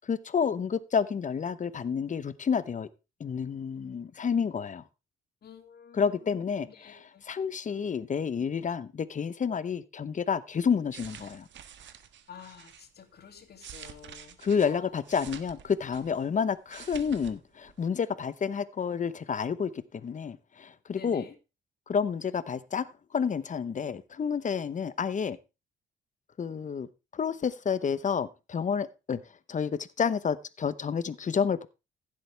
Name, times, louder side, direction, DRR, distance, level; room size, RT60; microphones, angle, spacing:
voice 1, 0.0-2.9 3.2-4.8 5.9-11.5 14.4-21.2 21.9-22.9 23.1-25.4 26.4-26.9 27.1-29.2 29.5-31.7, left 6 dB, 40° left, 0.9 m, -30 dB
voice 2, 5.4-7.2 12.3-14.9 20.9-21.3, left 7 dB, 55° left, 2.6 m, -50 dB
sound 1, 10.8-12.9 13.4-16.3 16.6-17.4 17.6-17.9, right 9 dB, 70° right, 1.4 m, -48 dB
15.0 x 7.7 x 3.4 m
cardioid pair, 90°, 20 cm